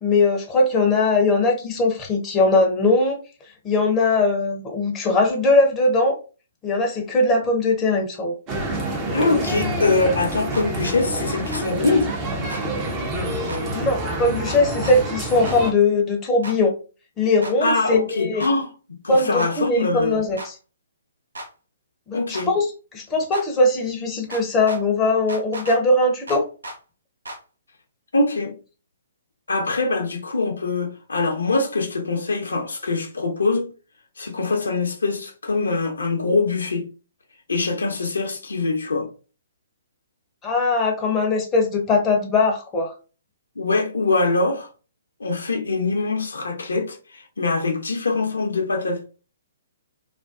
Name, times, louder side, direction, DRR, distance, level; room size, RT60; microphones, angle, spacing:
voice 1, 0.0-3.2 3.6-6.2 6.6-8.3 13.7-16.7 17.2-18.4 19.1-20.5 22.1-22.7 22.9-26.5 40.4-42.9, left 2 dB, 20° left, 0.6 m, -20 dB
sound 1, 8.5-15.7, right 1 dB, 25° right, 0.6 m, -27 dB
voice 2, 9.1-12.1 17.6-18.7 19.0-20.2 22.1-22.5 28.1-28.5 29.5-33.7 34.2-36.9 37.5-39.1 43.6-44.7 45.2-49.0, left 3 dB, 70° left, 0.5 m, -23 dB
sound 2, 10.5-10.7 11.5-11.7 12.5-12.6 13.5-13.6 14.5-15.0 15.4-15.6 16.4-16.6 17.4-17.6 18.4-18.5 19.4-19.5 20.4-20.5 21.3-21.5 22.3-22.5 23.3-23.5 24.3-24.8 25.3-25.8 26.3-26.8 27.2-27.4, right 1 dB, 75° right, 0.5 m, -35 dB
2.4 x 2.2 x 2.3 m
figure-of-eight pair, 125°, 0 cm